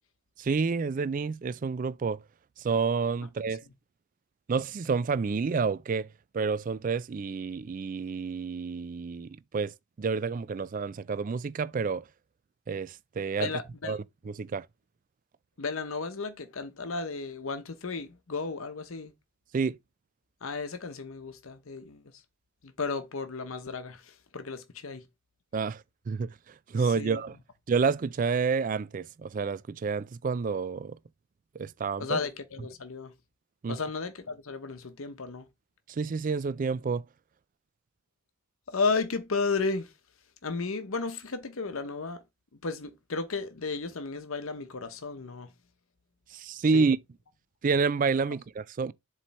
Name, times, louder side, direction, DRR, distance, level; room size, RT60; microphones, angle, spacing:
voice 1, 0.4-2.2 2.6-3.6 4.5-6.1 6.3-12.0 12.7-13.5 13.8-14.7 19.5-19.8 25.5-27.4 27.7-31.0 31.5-32.2 33.6-33.8 35.9-37.0 46.3-47.0 47.6-48.9, right 5 dB, 40° right, 0.3 m, -29 dB
voice 2, 13.4-14.0 15.6-19.1 20.4-22.0 22.6-25.1 26.9-27.2 32.0-33.1 33.7-35.5 38.7-39.9 40.4-42.2 42.6-45.5 46.7-46.9, left 4 dB, 70° left, 0.9 m, -33 dB
7.4 x 3.2 x 4.2 m
head